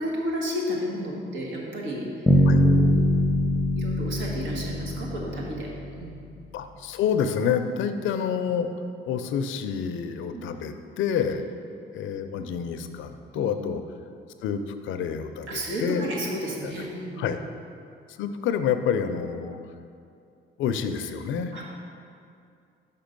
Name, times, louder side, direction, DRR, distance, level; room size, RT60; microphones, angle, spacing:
voice 1, 0.0-2.1 2.6-3.1 3.7-6.1 10.3-10.5 13.3-13.5 15.5-17.3 21.5-21.6, equal, 75° right, -2 dB, 1.4 m, -32 dB
Bass guitar, 2.3-6.2, left 1 dB, 5° left, 0.7 m, -22 dB
voice 2, 6.5-8.7 9.0-11.4 11.9-13.8 14.4-16.1 17.2-17.4 18.2-19.6 20.6-21.5, left 7 dB, 80° left, 8 dB, 0.5 m, -28 dB
5.5 x 5.1 x 5.2 m, 2.4 s
cardioid pair, 90°, 20 cm